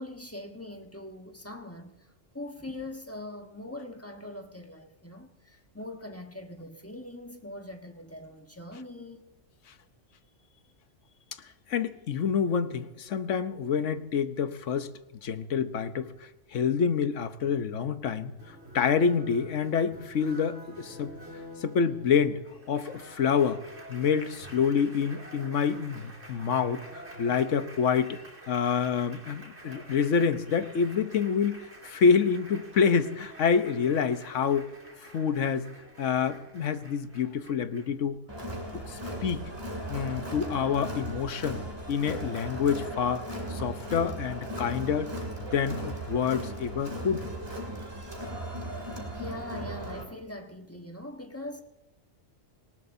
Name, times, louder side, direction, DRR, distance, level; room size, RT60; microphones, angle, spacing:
voice 1, 0.0-2.1 2.3-9.2 49.1-51.6, left 1 dB, 10° left, 1.2 m, -42 dB
voice 2, 11.7-14.9 15.2-21.1 21.6-22.4 22.7-23.6 23.9-26.8 27.2-28.2 28.5-34.7 35.1-35.7 36.0-38.2 38.7-39.5 39.9-41.6 41.9-45.1 45.4-47.3, left 6 dB, 75° left, 1.2 m, -27 dB
Applause, 18.4-38.1, right 1 dB, 60° right, 3.8 m, -48 dB
Crowd, 38.3-50.0, right 1 dB, 20° right, 2.6 m, -37 dB
19.0 x 18.5 x 2.7 m
omnidirectional pair, 1.3 m